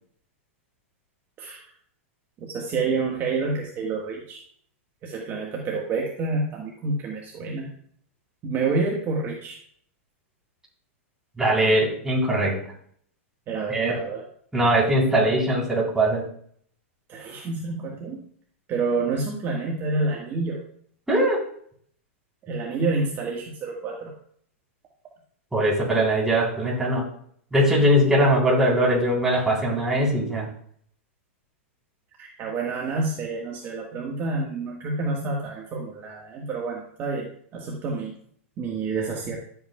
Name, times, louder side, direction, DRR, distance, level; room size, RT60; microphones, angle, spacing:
voice 1, 2.4-4.4 5.0-7.7 8.4-9.6 13.5-14.2 17.1-18.2 18.7-20.6 22.5-24.1 32.2-38.1 38.6-39.4, right 3 dB, 30° right, -1 dB, 1.5 m, -28 dB
voice 2, 11.4-12.6 13.7-14.0 14.5-16.2 21.1-21.4 25.5-27.1 27.5-30.5, right 1 dB, 5° right, -4 dB, 3.7 m, -21 dB
12.0 x 8.0 x 2.3 m, 0.62 s
hypercardioid pair, 125°, 7 cm